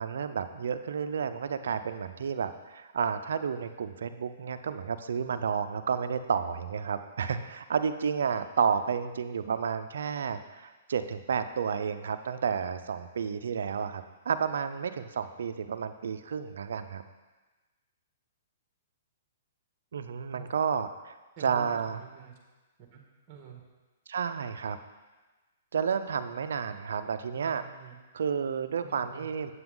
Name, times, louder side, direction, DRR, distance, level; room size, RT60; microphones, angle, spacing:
voice 1, 0.0-17.0 19.9-22.0 24.1-24.8 25.7-27.6 28.1-29.5, right 6 dB, 75° right, 10 dB, 0.6 m, -31 dB
voice 2, 21.4-22.3 22.9-23.0 23.3-23.6 27.3-28.0 28.8-29.3, right 7 dB, 35° right, 1 dB, 1.7 m, -48 dB
8.0 x 7.7 x 3.8 m, 1.2 s
hypercardioid pair, 140°, 0 cm